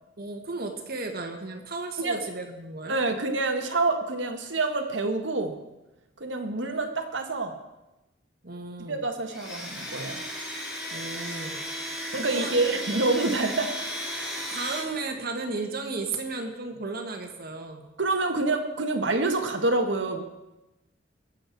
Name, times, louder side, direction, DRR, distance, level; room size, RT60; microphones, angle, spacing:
voice 1, 0.2-3.0 8.4-9.0 10.9-11.6 12.2-12.6 14.3-17.9, right 3 dB, 55° right, 3 dB, 1.6 m, -34 dB
voice 2, 2.9-5.6 6.2-7.6 8.9-10.2 12.1-13.8 18.0-20.2, right 2 dB, 80° right, 5 dB, 1.6 m, -27 dB
Domestic sounds home sounds, 9.3-14.8, equal, ahead, 3.8 m, -35 dB
22.0 x 7.8 x 4.6 m, 0.99 s
head